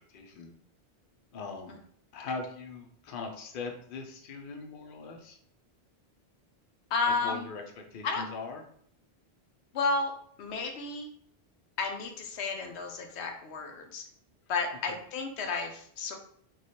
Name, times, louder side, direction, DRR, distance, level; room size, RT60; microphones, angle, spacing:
voice 1, 0.1-0.5 1.3-1.8 2.1-5.4 7.2-8.6 14.9-15.0, left 4 dB, 60° left, 3 dB, 0.7 m, -40 dB
voice 2, 6.9-7.5 8.0-8.2 9.7-10.1 10.4-11.1 11.8-14.1 14.5-16.2, left 4 dB, 85° left, 4 dB, 0.9 m, -32 dB
3.1 x 2.4 x 4.1 m, 0.62 s
omnidirectional pair, 1.1 m